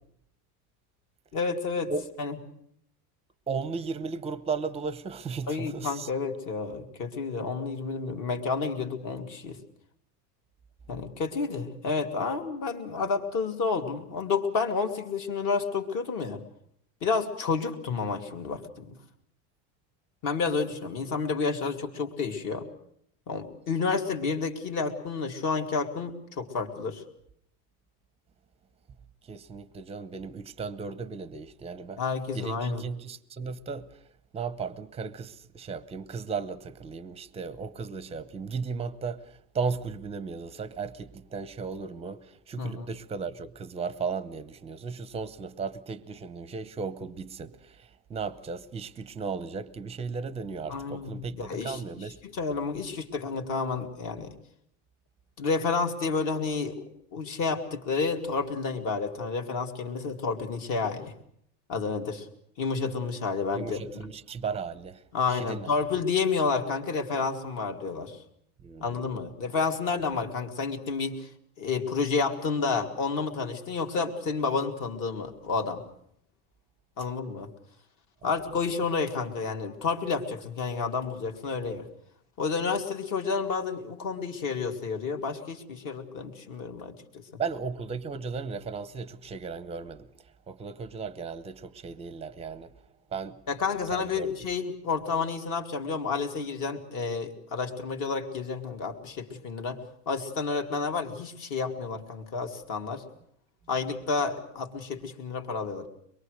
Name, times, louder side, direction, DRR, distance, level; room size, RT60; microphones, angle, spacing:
voice 1, 1.3-1.9 2.2-2.4 5.5-9.6 10.9-16.4 17.0-18.9 20.2-22.6 23.3-27.0 32.0-32.9 42.6-42.9 50.7-54.3 55.4-56.8 57.1-61.1 61.7-62.3 62.6-64.1 65.1-68.2 68.8-71.3 71.6-75.8 77.0-77.5 78.2-81.8 82.4-87.4 93.5-99.8 100.1-103.0 103.7-105.9, left 4 dB, 45° left, 2.6 m, -30 dB
voice 2, 3.5-6.1 29.3-32.0 32.3-33.9 34.3-39.2 39.5-42.2 42.5-47.5 48.1-52.2 63.5-65.0 65.3-65.7 68.6-69.1 78.2-78.3 87.4-90.1 90.5-92.7 93.1-93.4 93.9-94.3, right 5 dB, 15° right, 0.8 m, -35 dB
24.0 x 22.0 x 6.5 m
supercardioid pair, 150°, 46 cm